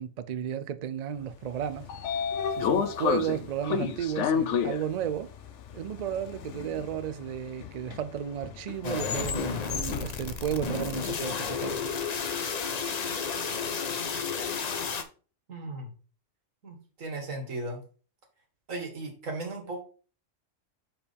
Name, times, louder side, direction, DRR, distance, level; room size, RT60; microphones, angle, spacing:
voice 1, 0.0-1.9 2.6-5.3 5.7-11.8, right 9 dB, 60° right, 0.4 m, -33 dB
Train / Sliding door, 1.5-11.6, left 7 dB, 70° left, 1.0 m, -32 dB
sound 1, 8.8-15.0, left 5 dB, 40° left, 0.6 m, -32 dB
voice 2, 15.5-15.9 16.6-17.8 18.7-19.8, right 2 dB, 85° right, 2.1 m, -36 dB
5.2 x 4.7 x 5.3 m
omnidirectional pair, 1.3 m